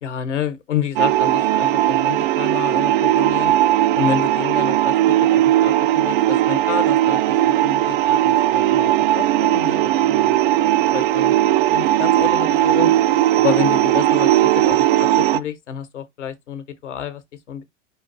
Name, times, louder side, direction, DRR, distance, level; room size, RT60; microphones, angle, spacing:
voice 1, 0.0-3.5 3.9-10.4 10.9-12.9 13.4-17.2 17.5-17.6, left 8 dB, 70° left, 1.1 m, -29 dB
sound 1, 1.0-15.4, right 13 dB, 45° right, 0.4 m, -17 dB
5.2 x 2.6 x 3.9 m
figure-of-eight pair, 85°, 37 cm